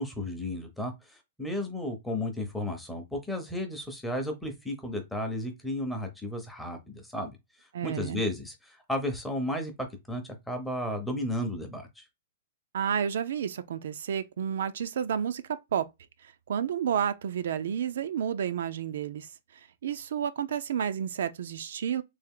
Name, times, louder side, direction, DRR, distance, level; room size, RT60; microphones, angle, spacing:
voice 1, 0.0-7.4 7.8-12.0, left 1 dB, 5° left, 0.7 m, -33 dB
voice 2, 7.7-8.2 12.7-15.9 16.2-22.0, right 8 dB, 70° right, 0.4 m, -31 dB
3.4 x 2.4 x 3.6 m
hypercardioid pair, 165°, 0 cm